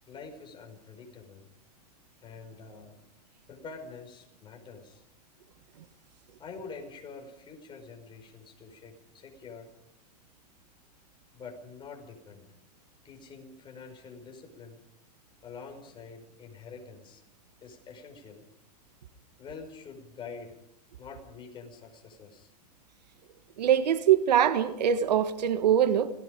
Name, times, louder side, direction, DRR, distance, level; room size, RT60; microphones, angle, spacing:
voice 1, 0.1-1.5 2.2-3.0 3.5-5.0 6.4-9.7 11.3-12.5 13.0-14.8 15.4-17.2 17.6-18.4 19.4-20.6 21.0-22.5, left 5 dB, 25° left, 5.1 m, -46 dB
voice 2, 23.6-26.1, right 9 dB, 90° right, 1.5 m, -23 dB
28.0 x 18.5 x 5.2 m
supercardioid pair, 135°, 21 cm